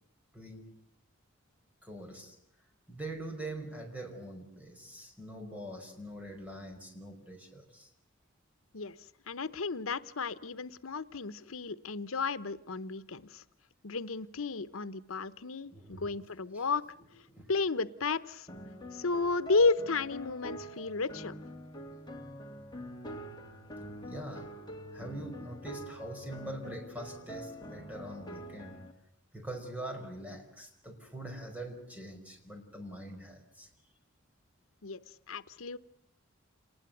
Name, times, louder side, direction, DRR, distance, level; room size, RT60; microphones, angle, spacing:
voice 1, 0.3-0.6 1.8-2.4 2.9-7.9 15.6-16.1 16.5-16.6 17.3-17.5 24.0-24.5 24.9-28.8 29.3-33.7, right 1 dB, 5° right, 3 dB, 5.2 m, -43 dB
voice 2, 9.3-13.4 13.8-16.8 17.5-18.5 18.9-21.4 34.8-35.0 35.3-35.8, left 4 dB, 90° left, 14 dB, 0.9 m, -32 dB
sound 1, 18.5-28.9, equal, 20° left, 2.7 m, -45 dB
28.0 x 20.0 x 8.1 m, 0.77 s
head